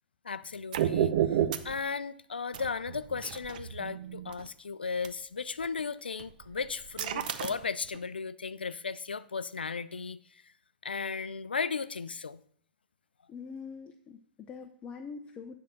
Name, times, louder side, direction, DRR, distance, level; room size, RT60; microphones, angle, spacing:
voice 1, 0.2-1.4 1.6-10.5 10.8-12.4, left 5 dB, 90° left, 0.4 m, -36 dB
sound 1, 0.7-1.8 2.5-4.5 5.0-5.1 5.6-5.8 6.2-8.0, right 10 dB, 60° right, 0.7 m, -31 dB
voice 2, 13.3-15.6, left 5 dB, 25° left, 0.6 m, -44 dB
10.0 x 3.7 x 5.8 m
hypercardioid pair, 110°, 5 cm